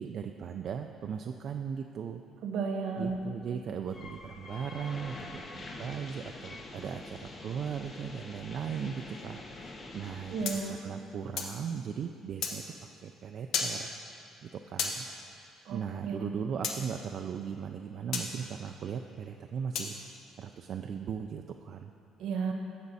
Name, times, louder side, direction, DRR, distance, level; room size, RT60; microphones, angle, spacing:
voice 1, 0.0-2.2 3.0-10.4 10.7-12.6 13.0-13.9 14.4-15.0 15.7-19.9 20.4-21.9, right 7 dB, 50° right, 5 dB, 0.3 m, -38 dB
voice 2, 2.4-3.2 10.3-10.8 15.7-16.3 22.2-22.5, right 5 dB, 70° right, 3 dB, 1.0 m, -33 dB
sound 1, 3.9-10.6, left 2 dB, 35° left, 0.9 m, -45 dB
sound 2, 10.4-11.6 12.4-12.6 13.5-13.7 14.8-15.0 16.6-16.8 18.1-18.3 19.7-19.9, left 5 dB, 70° left, 1.0 m, -32 dB
15.5 x 5.2 x 4.1 m, 2.5 s
cardioid pair, 145°, 0 cm